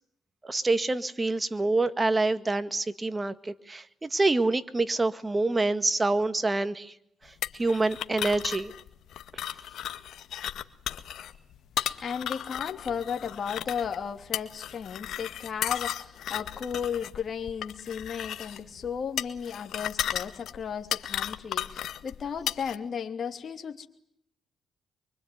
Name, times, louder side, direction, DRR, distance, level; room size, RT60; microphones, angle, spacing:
voice 1, 0.4-6.9 7.2-8.7 9.3-9.5, right 2 dB, 20° right, 12 dB, 1.8 m, -27 dB
sound 1, 7.4-22.8, left 11 dB, 75° left, 1.9 m, -35 dB
voice 2, 12.0-23.9, left 7 dB, 50° left, 5 dB, 3.0 m, -35 dB
25.0 x 24.5 x 9.5 m, 0.73 s
cardioid pair, 90°, 0 cm